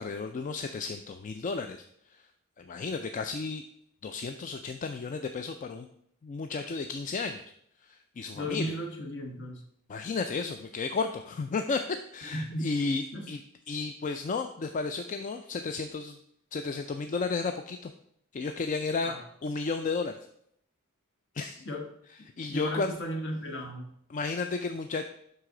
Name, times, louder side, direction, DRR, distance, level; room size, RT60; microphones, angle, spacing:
voice 1, 0.0-2.3 2.6-3.6 4.0-5.9 6.2-7.4 7.8-8.8 9.9-13.4 13.7-16.2 16.5-17.9 18.3-19.1 19.4-20.3 21.3-21.6 22.4-22.9 24.1-25.0, left 4 dB, 35° left, 7 dB, 0.4 m, -33 dB
voice 2, 8.3-9.6 12.3-12.7 13.1-13.3 19.0-19.2 21.6-21.9 22.5-23.9, equal, 60° left, 3 dB, 1.3 m, -35 dB
7.8 x 5.7 x 3.8 m, 0.71 s
head